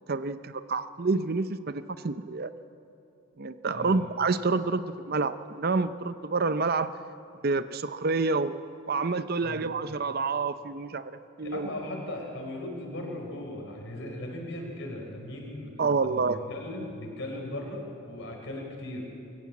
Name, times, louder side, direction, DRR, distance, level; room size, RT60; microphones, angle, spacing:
voice 1, 0.1-2.5 3.4-6.9 7.4-11.1 11.4-11.7 15.8-16.4, right 4 dB, 45° right, 12 dB, 0.6 m, -28 dB
voice 2, 11.4-15.7 16.0-19.1, left 1 dB, 55° left, 1 dB, 4.5 m, -38 dB
24.0 x 14.5 x 8.5 m, 2.9 s
head